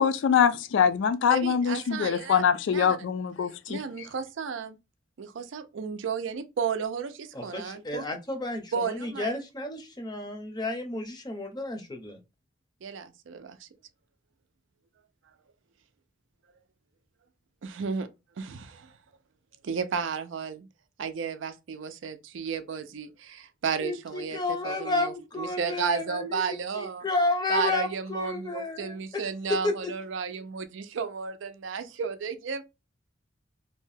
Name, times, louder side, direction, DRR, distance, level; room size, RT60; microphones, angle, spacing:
voice 1, 0.0-3.8, left 7 dB, 70° left, 0.3 m, -24 dB
voice 2, 1.3-2.4 2.7-3.0 3.7-4.8 5.2-8.1 8.7-9.4 12.8-13.7 17.6-18.1 18.4-18.9 19.6-20.7 21.0-27.1 27.5-32.6, right 6 dB, 75° right, 0.4 m, -33 dB
voice 3, 7.3-12.2 23.8-29.0 29.6-29.7, left 2 dB, 20° left, 0.6 m, -31 dB
2.7 x 2.2 x 3.2 m
head